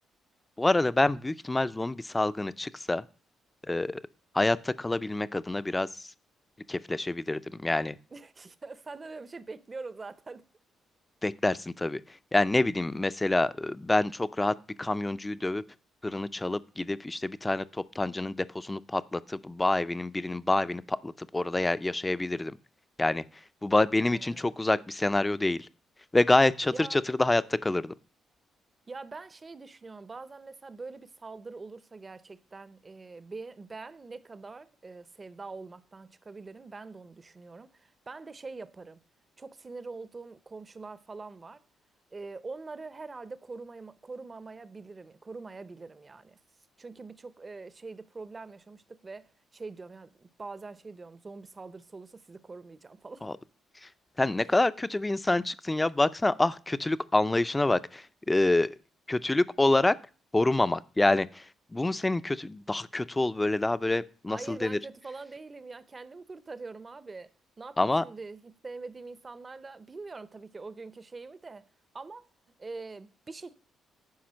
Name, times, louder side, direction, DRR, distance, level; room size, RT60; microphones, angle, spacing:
voice 1, 0.6-3.0 3.7-4.0 4.3-6.1 6.7-8.0 11.2-12.0 12.3-15.6 16.0-22.6 23.0-23.2 23.6-25.7 26.1-27.9 53.2-53.3 53.8-53.9 54.2-58.8 59.1-60.0 60.3-64.8 67.8-68.0, left 2 dB, 15° left, 0.5 m, -27 dB
voice 2, 8.1-10.4 24.0-24.5 26.7-27.1 28.9-39.0 39.4-41.6 42.1-46.4 46.8-53.3 64.3-67.3 67.6-71.7 71.9-72.3 72.6-73.5, right 3 dB, 30° right, 0.7 m, -44 dB
10.5 x 4.9 x 6.3 m
cardioid pair, 90°, 0 cm